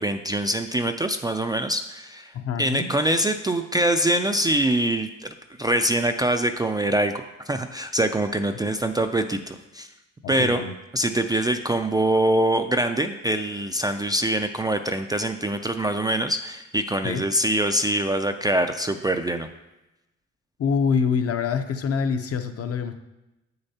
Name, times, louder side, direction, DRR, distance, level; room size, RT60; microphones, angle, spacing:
voice 1, 0.0-2.3 2.6-5.3 5.6-7.1 7.5-9.9 10.3-10.6 10.9-19.5, right 1 dB, 15° right, 6 dB, 0.3 m, -24 dB
voice 2, 2.3-2.9 10.2-10.7 17.0-17.2 20.6-23.0, left 6 dB, 50° left, 8 dB, 0.7 m, -25 dB
8.0 x 6.6 x 2.8 m, 0.96 s
cardioid pair, 90°, 30 cm